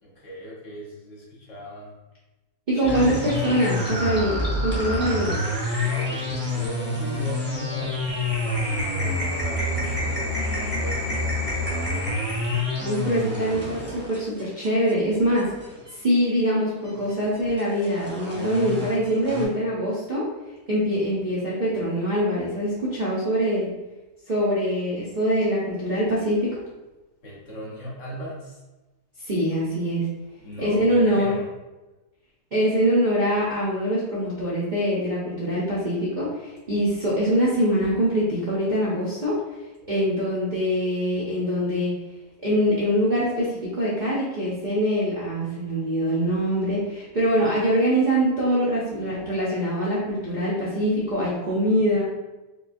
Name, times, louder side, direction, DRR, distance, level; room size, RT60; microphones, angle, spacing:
voice 1, 0.0-2.0 2.7-3.2 5.7-12.3 27.2-28.6 30.4-31.5, equal, 55° left, -5 dB, 1.2 m, -37 dB
voice 2, 2.7-5.3 12.8-15.5 16.0-20.3 20.7-23.7 24.3-26.6 29.2-30.0 30.6-31.4 32.5-39.4 39.9-41.9 42.4-52.1, equal, 45° right, -9 dB, 0.6 m, -23 dB
sound 1, 2.8-15.9 16.8-19.4, left 1 dB, 10° right, 0.7 m, -28 dB
4.5 x 2.3 x 2.5 m, 1.1 s
omnidirectional pair, 1.6 m